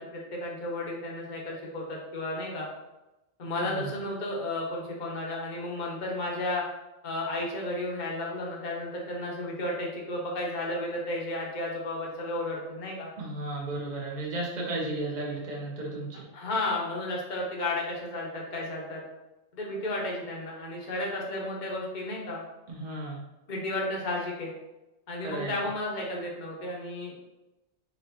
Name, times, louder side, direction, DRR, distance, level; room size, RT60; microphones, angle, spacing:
voice 1, 0.0-2.7 3.4-6.6 7.0-13.1 16.3-19.0 19.5-22.4 23.5-24.5 25.1-27.1, left 1 dB, 45° left, -2 dB, 0.9 m, -33 dB
voice 2, 13.2-16.2 22.7-23.2 25.2-25.5, right 2 dB, 40° right, -3 dB, 0.9 m, -34 dB
4.2 x 3.1 x 2.8 m, 0.99 s
omnidirectional pair, 1.3 m